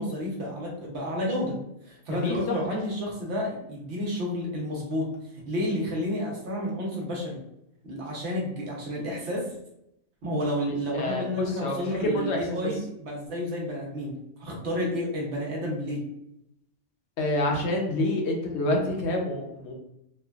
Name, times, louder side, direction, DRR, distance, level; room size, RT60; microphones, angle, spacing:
voice 1, 0.0-1.6 1.8-5.1 5.5-7.4 7.8-9.5 10.2-16.1, left 1 dB, 65° right, -2 dB, 1.1 m, -30 dB
voice 2, 2.1-2.8 10.9-12.7 17.2-19.7, left 1 dB, 70° left, 1 dB, 0.9 m, -28 dB
3.2 x 2.2 x 2.3 m, 0.79 s
omnidirectional pair, 1.2 m